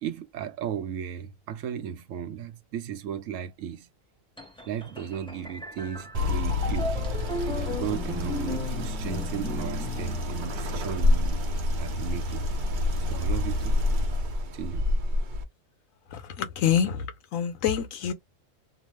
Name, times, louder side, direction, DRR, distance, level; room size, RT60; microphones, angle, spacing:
voice 1, 0.0-3.9 4.7-6.9 7.4-11.5 11.8-12.5 13.0-13.8 14.5-14.8, right 9 dB, 80° right, 0.9 m, -35 dB
sound 1, 4.4-11.1, left 1 dB, 5° left, 0.4 m, -37 dB
sound 2, 6.1-15.4, left 2 dB, 55° right, 0.6 m, -28 dB
voice 2, 16.1-18.1, left 8 dB, 85° left, 1.1 m, -27 dB
2.9 x 2.0 x 3.1 m
omnidirectional pair, 1.3 m